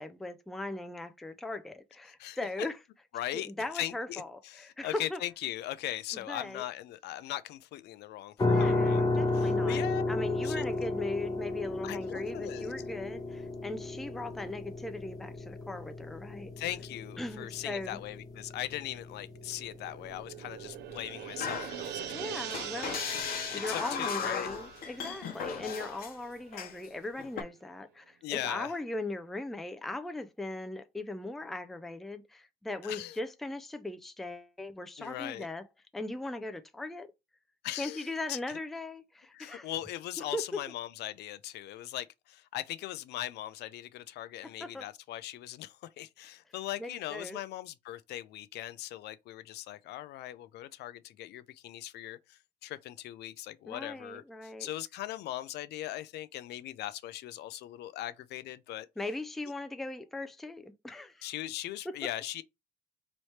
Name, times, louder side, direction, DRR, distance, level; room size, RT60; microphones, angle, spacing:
voice 1, 0.0-2.8 3.3-5.2 6.3-6.6 8.4-16.5 17.2-18.0 22.1-23.1 23.5-35.6 35.9-37.1 37.8-39.7 40.3-40.4 44.6-44.9 46.8-47.4 53.7-54.7 59.0-61.3 61.9-62.0, left 2 dB, ahead, 0.3 m, -39 dB
voice 2, 3.1-3.5 3.7-10.0 10.4-10.6 11.8-12.7 16.6-22.8 23.5-24.5 28.2-28.7 32.8-33.2 35.0-35.5 37.6-38.4 39.3-58.9 61.2-62.4, left 14 dB, 75° left, 0.4 m, -39 dB
sound 1, 8.4-21.2, left 2 dB, 20° left, 0.8 m, -33 dB
sound 2, 19.4-26.3 26.7-26.8, right 13 dB, 85° right, 0.4 m, -43 dB
sound 3, 21.4-22.2 22.5-26.2 26.5-26.9 27.2-27.4, left 6 dB, 60° left, 0.8 m, -37 dB
3.2 x 3.0 x 4.2 m
cardioid pair, 160°, 17 cm